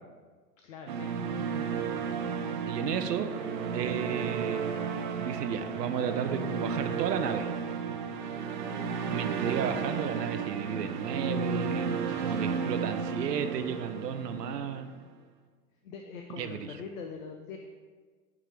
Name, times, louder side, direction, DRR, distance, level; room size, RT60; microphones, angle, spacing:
voice 1, 0.6-1.7 8.7-9.3 12.1-12.4 15.8-17.7, left 5 dB, 55° left, 4 dB, 0.7 m, -44 dB
sound 1, 0.9-15.0, right 6 dB, 35° right, 0.4 m, -33 dB
voice 2, 2.7-3.3 3.7-4.7 5.1-7.5 9.1-11.9 12.2-14.9 16.4-16.8, right 7 dB, 75° right, 9 dB, 0.6 m, -33 dB
9.4 x 3.7 x 3.3 m, 1.5 s
figure-of-eight pair, 105°, 49 cm